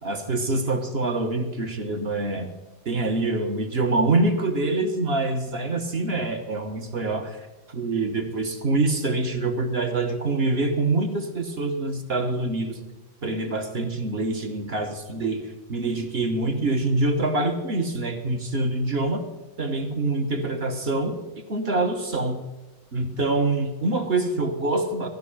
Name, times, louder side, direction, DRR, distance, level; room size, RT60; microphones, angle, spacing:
voice 1, 0.0-2.5 2.8-7.4 7.7-12.8 13.2-19.3 19.6-21.2 21.5-22.4 22.9-25.1, right 2 dB, 40° right, 5 dB, 1.1 m, -25 dB
14.5 x 5.6 x 9.9 m, 1.1 s
omnidirectional pair, 2.1 m